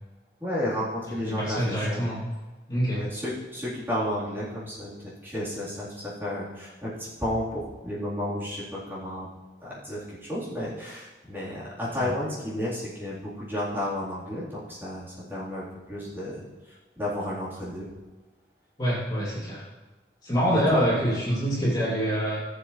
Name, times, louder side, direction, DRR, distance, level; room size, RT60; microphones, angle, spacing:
voice 1, 0.4-2.1 2.9-9.3 9.6-17.9 20.5-20.8, left 1 dB, 10° right, -9 dB, 3.8 m, -32 dB
voice 2, 1.3-2.2 2.7-3.0 12.0-12.1 18.8-19.6 20.2-22.4, equal, 25° left, -8 dB, 2.9 m, -25 dB
17.5 x 7.5 x 3.3 m, 1.2 s
head